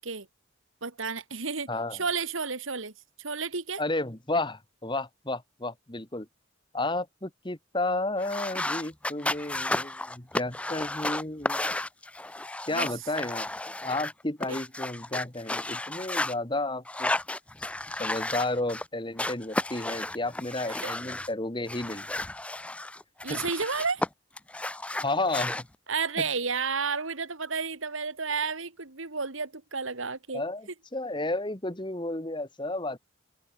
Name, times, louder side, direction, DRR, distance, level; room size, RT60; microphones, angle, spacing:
voice 1, 0.8-2.9 3.2-3.8 12.7-12.9 20.7-20.9 23.2-24.0 25.9-30.4, right 5 dB, 70° right, 2.3 m, -31 dB
voice 2, 1.7-2.0 3.8-6.3 6.7-11.6 12.7-13.5 13.8-17.1 17.6-17.7 18.0-22.1 23.3-23.4 25.0-25.7 26.2-26.3 30.3-33.0, left 2 dB, 20° left, 1.6 m, -32 dB
sound 1, 8.2-16.3 16.8-18.9 19.2-21.3 21.7-24.1 24.4-25.6, left 2 dB, 5° left, 0.3 m, -33 dB
head